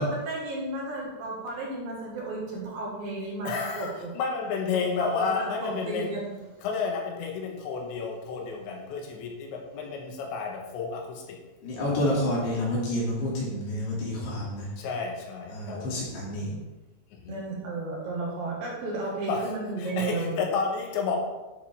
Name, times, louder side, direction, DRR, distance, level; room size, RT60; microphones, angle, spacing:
voice 1, 0.1-4.1 5.4-6.4 17.3-20.4, right 2 dB, 60° right, -3 dB, 3.3 m, -33 dB
voice 2, 3.4-6.2 6.6-11.4 11.8-12.1 14.8-15.9 17.1-17.4 19.3-21.2, left 5 dB, 90° left, 2 dB, 3.7 m, -31 dB
voice 3, 11.6-14.7 15.5-16.5, left 1 dB, 70° left, -5 dB, 4.9 m, -29 dB
10.5 x 7.5 x 3.5 m, 1.1 s
omnidirectional pair, 5.0 m